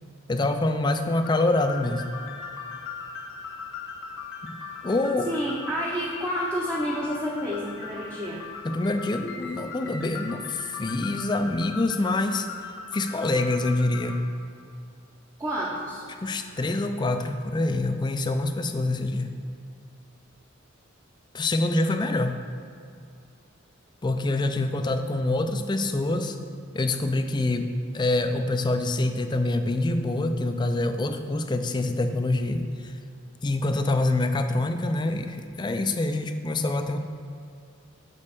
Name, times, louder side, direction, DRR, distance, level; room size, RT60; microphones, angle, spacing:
voice 1, 0.3-2.1 4.4-4.5 4.8-5.3 8.6-12.5 12.9-14.2 16.2-19.3 21.3-22.4 24.0-26.4 26.7-27.7 27.9-32.9 33.4-37.0, left 2 dB, 20° left, 7 dB, 0.4 m, -26 dB
sound 1, 1.2-14.2, left 5 dB, 65° left, 1.2 m, -39 dB
voice 2, 5.3-8.4 15.4-16.0, equal, 15° right, -5 dB, 0.7 m, -29 dB
5.4 x 5.2 x 6.6 m, 2.5 s
head